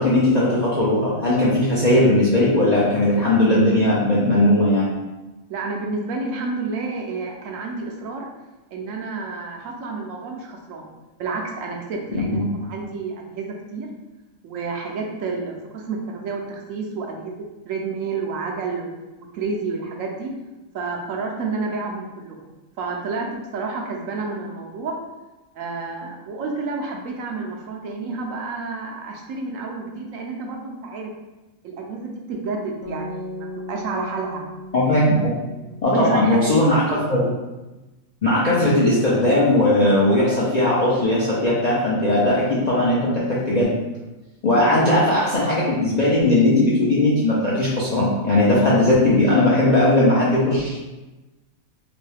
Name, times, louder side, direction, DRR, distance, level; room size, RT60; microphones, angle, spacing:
voice 1, 0.0-4.9 12.1-12.4 34.7-35.3 35.8-37.3 38.2-43.7 44.4-50.8, left 1 dB, 50° left, -7 dB, 0.5 m, -18 dB
voice 2, 5.5-8.3 8.7-10.9 11.2-13.9 14.4-17.3 17.6-18.9 19.3-20.3 20.7-22.5 22.8-25.0 25.5-31.1 31.6-34.4 35.9-37.0 44.6-44.9, right 4 dB, 75° right, 0 dB, 1.0 m, -30 dB
sound 1, 32.8-37.0, left 1 dB, 80° left, 1.2 m, -37 dB
3.0 x 2.7 x 3.2 m, 1.1 s
omnidirectional pair, 1.5 m